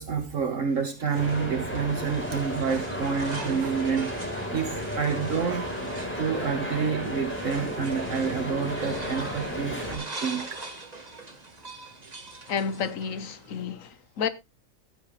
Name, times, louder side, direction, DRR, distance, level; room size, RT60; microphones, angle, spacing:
voice 1, 0.0-4.1 4.5-5.7 6.2-10.6, right 6 dB, 65° right, 1.6 m, -28 dB
sound 1, 0.7-13.6, right 2 dB, 30° right, 1.8 m, -43 dB
sound 2, 1.1-10.0, equal, 10° left, 4.0 m, -33 dB
voice 2, 12.5-14.3, left 6 dB, 75° left, 1.4 m, -30 dB
15.0 x 8.5 x 3.2 m
omnidirectional pair, 1.4 m